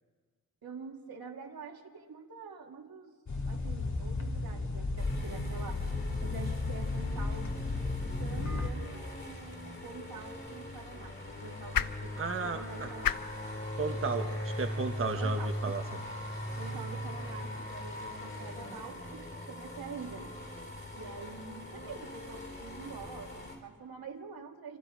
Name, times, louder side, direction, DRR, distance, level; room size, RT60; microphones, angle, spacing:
voice 1, 0.6-3.1 3.5-5.8 6.2-7.5 8.2-12.2 12.4-13.2 15.2-15.5 16.3-20.3 20.9-24.8, right 4 dB, 80° right, 2 dB, 2.4 m, -46 dB
sound 1, 3.3-8.7, left 3 dB, 55° left, 2.3 m, -34 dB
sound 2, 5.0-23.6, left 1 dB, 35° left, 3.6 m, -40 dB
sound 3, 9.9-16.2, left 9 dB, 75° left, 0.7 m, -40 dB
voice 2, 12.2-12.9 13.8-16.0, right 4 dB, 40° right, 5 dB, 1.1 m, -34 dB
26.5 x 26.0 x 5.1 m, 1.5 s
wide cardioid pair, 155°, 35 cm